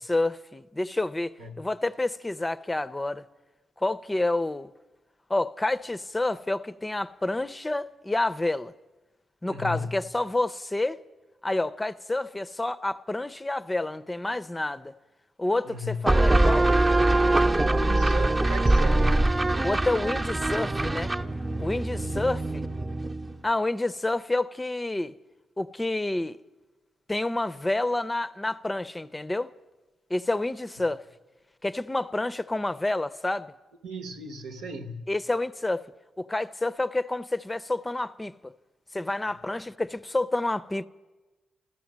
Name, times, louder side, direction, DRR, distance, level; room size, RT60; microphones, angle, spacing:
voice 1, 0.0-3.2 3.8-4.7 5.3-8.7 9.4-11.0 11.4-15.0 15.4-16.8 19.6-21.1 21.6-22.7 23.4-25.2 25.6-26.4 27.1-29.5 30.1-31.0 31.6-33.5 35.1-35.9 36.2-38.5 38.9-40.9, left 2 dB, 20° left, 0.5 m, -29 dB
voice 2, 9.4-9.9 15.7-16.0 17.7-19.2 22.0-22.2 33.8-35.1, equal, 85° right, 1.0 m, -36 dB
sound 1, 16.1-23.4, right 2 dB, 30° right, 0.8 m, -23 dB
14.0 x 13.5 x 7.3 m
supercardioid pair, 50°, 0 cm